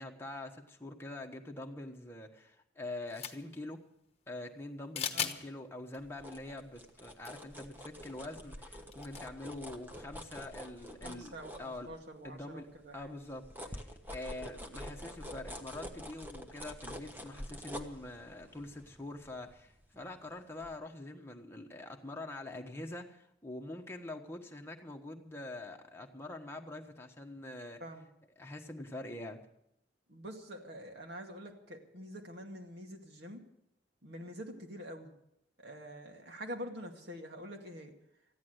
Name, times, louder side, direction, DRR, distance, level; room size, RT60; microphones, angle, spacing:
voice 1, 0.0-3.8 4.3-11.3 11.6-11.9 12.2-12.7 12.9-27.8 28.4-29.5, left 2 dB, 15° left, 2 dB, 1.3 m, -45 dB
sound 1, 3.1-3.6 4.9-5.4 5.9-6.0 7.2-7.3 7.5-7.6 8.9-9.3, left 7 dB, 35° left, 1.2 m, -36 dB
sound 2, 6.0-12.3 12.7-20.2 20.6-20.7, equal, 10° right, 1.2 m, -47 dB
voice 2, 11.0-13.1 27.8-28.1 30.1-33.4 34.0-35.1 35.6-37.9, equal, 60° right, 3 dB, 2.2 m, -46 dB
14.5 x 11.0 x 8.0 m, 0.77 s
head